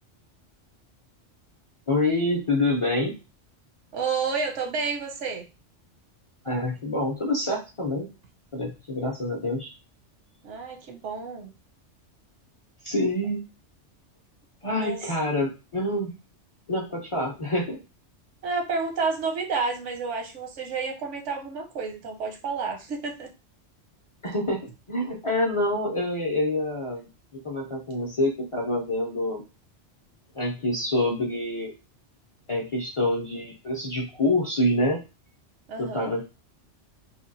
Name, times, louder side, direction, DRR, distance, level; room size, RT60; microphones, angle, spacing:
voice 1, 1.9-3.1 6.4-8.1 8.5-9.7 12.8-13.4 14.6-16.1 16.7-17.8 24.2-29.4 30.3-31.7 32.5-35.0 35.8-36.2, left 1 dB, 45° left, -1 dB, 0.4 m, -26 dB
voice 2, 3.9-5.4 10.4-11.5 14.8-15.0 18.4-23.3 35.7-36.1, right 4 dB, 90° right, 3 dB, 1.1 m, -30 dB
3.4 x 2.3 x 2.6 m, 0.29 s
omnidirectional pair, 1.2 m